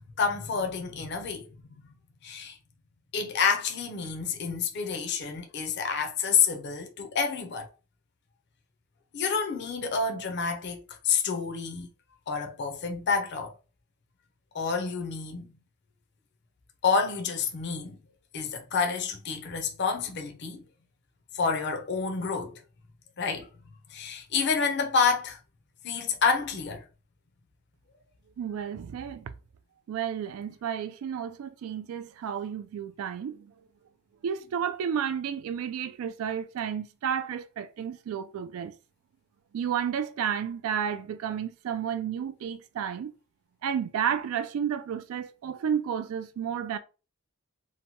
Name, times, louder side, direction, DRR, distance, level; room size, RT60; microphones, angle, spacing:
voice 1, 0.2-1.5 2.2-2.6 3.1-7.7 9.1-11.9 12.3-13.5 14.5-15.5 16.8-18.0 18.3-20.6 21.3-22.6 23.2-23.5 23.9-25.4 25.8-26.8, left 5 dB, 55° left, 0.5 m, -28 dB
voice 2, 28.4-29.3 29.9-33.5 34.2-38.7 39.5-43.1 43.6-46.8, right 8 dB, 75° right, 0.3 m, -32 dB
2.8 x 2.1 x 2.8 m
head